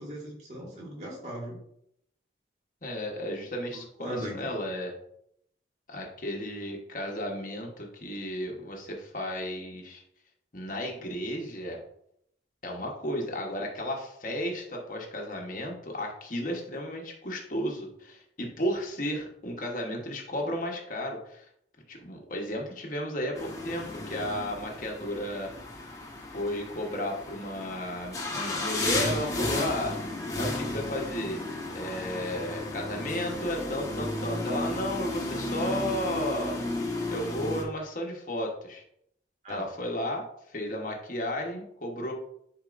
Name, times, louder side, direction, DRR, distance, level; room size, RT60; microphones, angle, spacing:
voice 1, 0.0-1.6 4.0-4.4 39.4-39.6, equal, 40° right, -4 dB, 2.3 m, -38 dB
voice 2, 2.8-4.9 5.9-10.0 10.5-11.8 12.6-21.5 21.9-25.5 26.3-30.0 30.4-31.4 31.7-36.6 37.1-38.8 39.5-42.1, equal, 45° left, 0 dB, 1.2 m, -33 dB
sound 1, 23.4-37.6, left 2 dB, 20° left, 1.1 m, -33 dB
10.5 x 4.5 x 2.6 m, 0.73 s
head